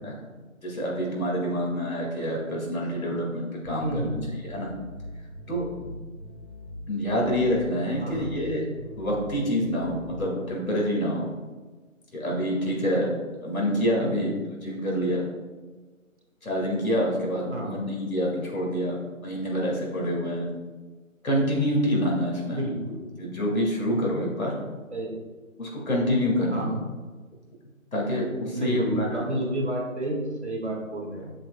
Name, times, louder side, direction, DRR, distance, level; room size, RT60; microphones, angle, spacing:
voice 1, 0.6-4.1 4.4-4.7 5.5-5.9 6.9-8.6 9.0-11.3 12.1-13.1 13.4-14.3 14.6-15.3 16.4-19.0 19.2-20.5 21.2-22.6 23.2-24.5 25.6-26.7 27.9-29.3, equal, 80° left, -2 dB, 2.3 m, -27 dB
sound 1, 3.6-10.5, left 1 dB, 25° right, 1.5 m, -41 dB
voice 2, 3.8-4.3 8.0-8.3 14.0-14.3 17.5-17.7 22.5-23.0 24.9-25.2 26.5-26.8 28.5-31.3, right 1 dB, 55° right, 0 dB, 2.0 m, -30 dB
7.7 x 7.6 x 2.3 m, 1.3 s
figure-of-eight pair, 170°, 41 cm